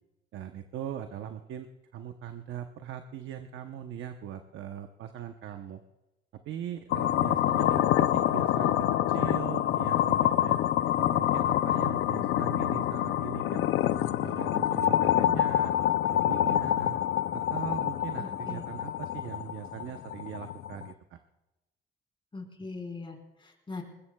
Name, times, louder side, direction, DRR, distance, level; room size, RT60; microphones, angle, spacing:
voice 1, 0.3-1.7 1.9-5.8 6.4-10.6 11.0-13.6 14.2-15.7 16.1-17.0 17.3-21.2, right 10 dB, 75° right, 7 dB, 0.9 m, -40 dB
sound 1, 6.9-20.9, left 12 dB, 85° left, 0.5 m, -27 dB
voice 2, 18.2-18.6 22.3-23.8, left 3 dB, 25° left, 2 dB, 3.8 m, -41 dB
20.5 x 20.5 x 2.3 m, 1.0 s
cardioid pair, 90°, 20 cm